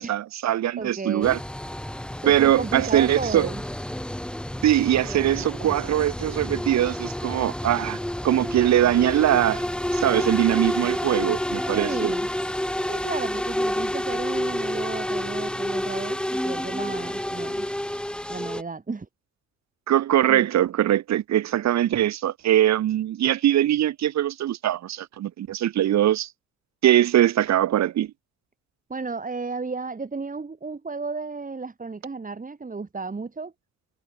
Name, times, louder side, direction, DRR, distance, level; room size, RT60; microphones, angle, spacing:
voice 1, 0.0-1.4 2.3-3.5 4.6-8.0 8.2-9.6 9.9-12.1 19.9-26.3 26.8-28.1, right 12 dB, 65° right, 1.1 m, -22 dB
voice 2, 0.8-1.4 1.8-3.6 11.7-12.3 12.9-17.7 18.3-19.1 20.2-20.5 28.9-33.5, right 4 dB, 25° right, 5.4 m, -33 dB
sound 1, 1.2-18.6, left 1 dB, 5° left, 0.9 m, -29 dB
cardioid pair, 90°, 30 cm